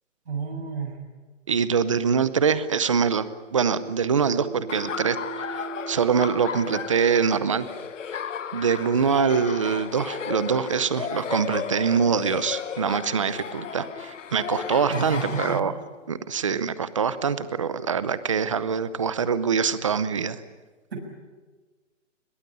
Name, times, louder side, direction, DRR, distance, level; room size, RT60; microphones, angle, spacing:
voice 1, 0.3-1.0 14.9-15.6 20.9-21.0, right 4 dB, 60° right, 0 dB, 6.8 m, -30 dB
voice 2, 1.5-5.2 5.5-7.7 8.5-15.7 16.1-20.4, right 6 dB, 25° right, 15 dB, 0.7 m, -24 dB
sound 1, 2.9-13.3 14.2-18.0, right 6 dB, 40° left, 4.6 m, -44 dB
Laughter, 4.7-15.6, left 8 dB, 75° left, 1.2 m, -34 dB
21.5 x 21.0 x 9.9 m, 1.3 s
hypercardioid pair, 175°, 37 cm